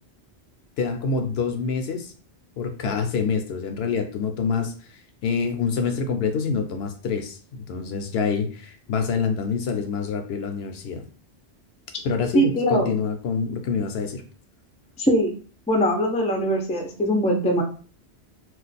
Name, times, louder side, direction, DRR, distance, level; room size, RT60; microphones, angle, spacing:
voice 1, 0.8-2.1 2.6-11.0 12.0-14.2, left 5 dB, 70° left, 7 dB, 0.8 m, -26 dB
voice 2, 12.3-12.9 15.0-15.3 15.7-17.6, right 1 dB, 10° left, 1 dB, 0.3 m, -21 dB
2.4 x 2.3 x 3.9 m, 0.40 s
omnidirectional pair, 1.1 m